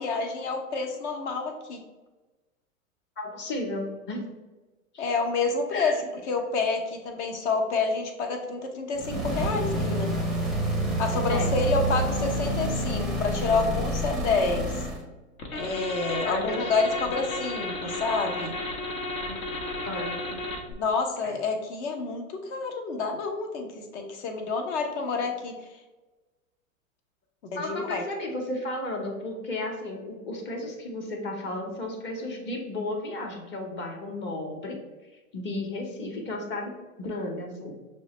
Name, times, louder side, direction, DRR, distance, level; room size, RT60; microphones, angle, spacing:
voice 1, 0.0-1.8 5.0-10.1 11.0-14.9 15.5-18.5 20.7-25.6 27.5-28.0, left 4 dB, 55° left, 4 dB, 0.9 m, -28 dB
voice 2, 3.2-4.3 4.9-5.1 5.7-5.9 11.3-11.5 16.2-16.7 19.8-20.1 21.2-21.4 27.6-34.8 35.3-37.7, left 2 dB, 25° left, 1 dB, 0.9 m, -34 dB
sound 1, 8.9-15.0, right 1 dB, ahead, 0.5 m, -28 dB
sound 2, 15.4-20.7, left 2 dB, 80° left, 1.1 m, -33 dB
6.2 x 2.1 x 3.0 m, 1.2 s
hypercardioid pair, 110°, 41 cm